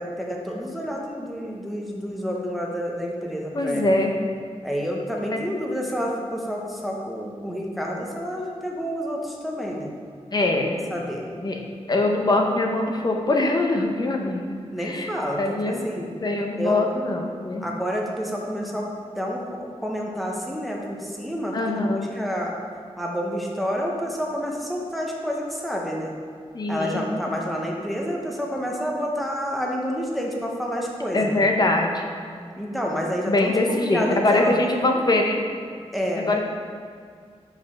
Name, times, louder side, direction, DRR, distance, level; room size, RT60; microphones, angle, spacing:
voice 1, 0.0-3.8 4.6-9.9 10.9-11.2 14.7-16.1 16.6-16.8 17.6-18.9 19.2-22.6 23.0-26.1 26.7-31.4 32.6-34.5 35.9-36.2, equal, ahead, -2 dB, 0.9 m, -29 dB
voice 2, 3.5-4.1 5.3-5.4 10.3-10.7 11.4-11.6 11.9-14.4 14.8-15.1 15.4-15.9 16.2-17.6 21.5-22.1 26.5-27.0 27.3-27.4 31.1-32.0 33.3-35.4 36.2-36.4, left 2 dB, 35° left, 2 dB, 0.7 m, -23 dB
5.2 x 5.0 x 5.7 m, 2.2 s
wide cardioid pair, 135°, 11 cm